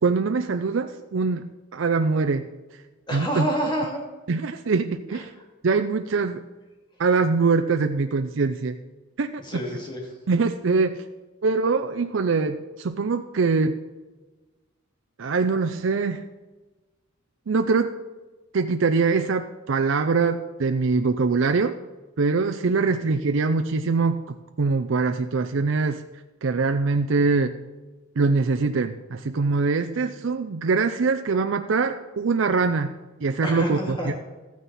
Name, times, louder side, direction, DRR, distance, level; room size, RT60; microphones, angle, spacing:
voice 1, 0.0-2.5 3.1-3.5 4.3-5.3 5.6-6.4 7.0-8.8 9.2-9.4 10.3-11.0 11.4-13.8 15.2-16.2 17.5-17.9 18.5-21.7 22.2-26.0 26.4-27.5 28.2-32.9 33.2-34.2, right 4 dB, 75° right, 7 dB, 0.5 m, -23 dB
voice 2, 3.1-4.0 5.1-5.2 9.4-10.0 33.4-34.2, equal, 25° left, -1 dB, 2.8 m, -28 dB
14.0 x 9.3 x 4.2 m, 1.2 s
head